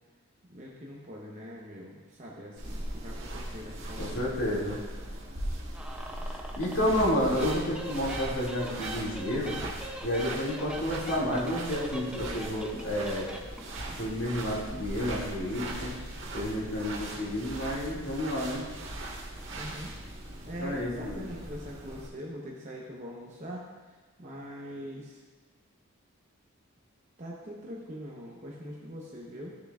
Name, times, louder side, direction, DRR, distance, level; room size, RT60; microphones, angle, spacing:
voice 1, 0.5-4.3 19.5-19.9 20.4-23.7 24.2-25.2 27.2-29.5, equal, 35° right, -3 dB, 0.9 m, -42 dB
sound 1, 2.6-22.1, right 1 dB, 60° right, 1.5 m, -39 dB
voice 2, 4.0-4.8 6.3-9.6 10.0-13.3 14.0-16.0 16.3-18.7 20.6-21.3, left 1 dB, 65° left, -5 dB, 2.4 m, -30 dB
sound 2, 5.7-7.1 7.3-13.8, right 1 dB, 5° right, 0.6 m, -42 dB
13.0 x 6.9 x 2.4 m, 1.3 s
head